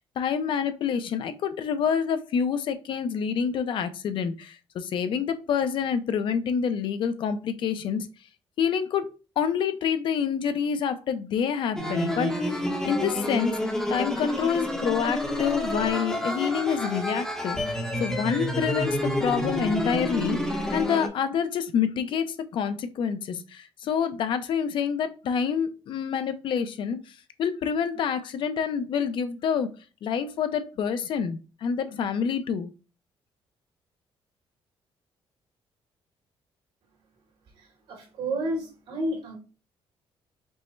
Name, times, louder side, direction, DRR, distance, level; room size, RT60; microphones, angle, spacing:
voice 1, 0.0-8.1 8.6-9.1 9.4-12.6 12.8-13.6 13.9-29.7 30.0-32.7, left 7 dB, 55° left, 10 dB, 0.6 m, -27 dB
sound 1, 11.8-21.1, left 1 dB, 5° left, 0.8 m, -29 dB
voice 2, 37.9-39.4, right 1 dB, 70° right, 0 dB, 2.2 m, -30 dB
5.3 x 2.1 x 4.4 m, 0.32 s
cardioid pair, 160°, 10 cm